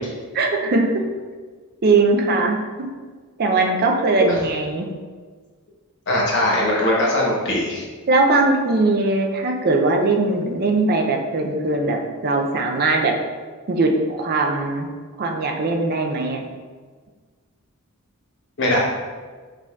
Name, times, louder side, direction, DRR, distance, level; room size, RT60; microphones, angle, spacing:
voice 1, 0.3-1.1 1.8-2.9 3.4-4.9 8.1-13.2 13.7-14.9 15.2-16.5, right 3 dB, 45° right, 2 dB, 0.5 m, -20 dB
voice 2, 6.1-7.8 18.6-18.8, left 1 dB, 55° left, -4 dB, 0.9 m, -20 dB
4.8 x 3.6 x 2.3 m, 1.5 s
head